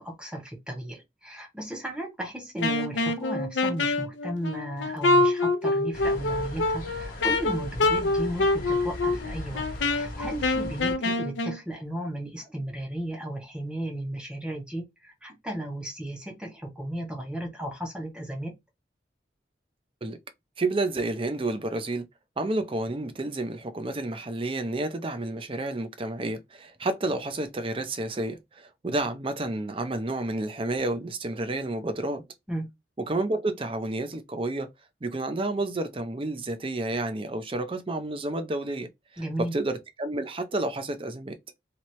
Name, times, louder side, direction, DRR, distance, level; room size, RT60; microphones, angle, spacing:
voice 1, 0.0-18.5 32.5-32.7 39.2-39.5, right 1 dB, 5° right, 0.8 m, -35 dB
Wind instrument woodwind instrument, 2.6-11.6, left 2 dB, 80° left, 0.5 m, -26 dB
sound 1, 5.9-10.9, left 1 dB, 50° left, 1.1 m, -39 dB
voice 2, 20.6-22.0 22.4-32.2 33.0-34.7 35.0-41.4, right 2 dB, 30° right, 0.5 m, -30 dB
2.9 x 2.8 x 3.0 m
head